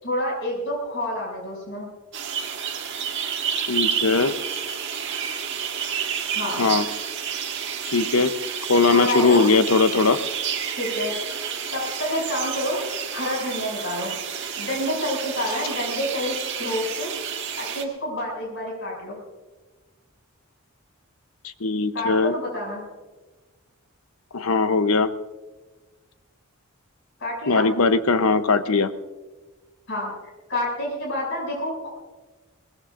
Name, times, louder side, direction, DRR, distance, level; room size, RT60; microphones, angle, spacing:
voice 1, 0.0-1.9 6.3-6.6 8.9-9.5 10.8-11.1 11.7-12.9 13.1-14.1 14.5-17.2 17.6-19.2 21.9-22.8 27.2-27.7 29.9-30.1 30.5-31.9, left 1 dB, 60° left, -2 dB, 6.5 m, -28 dB
sound 1, 2.1-17.8, right 7 dB, 60° right, 1.5 m, -30 dB
voice 2, 3.6-4.3 6.6-6.9 7.9-8.3 8.7-10.2 21.6-22.3 24.3-25.1 27.5-28.9, left 4 dB, 80° left, 11 dB, 0.8 m, -20 dB
22.5 x 19.5 x 2.5 m, 1.2 s
head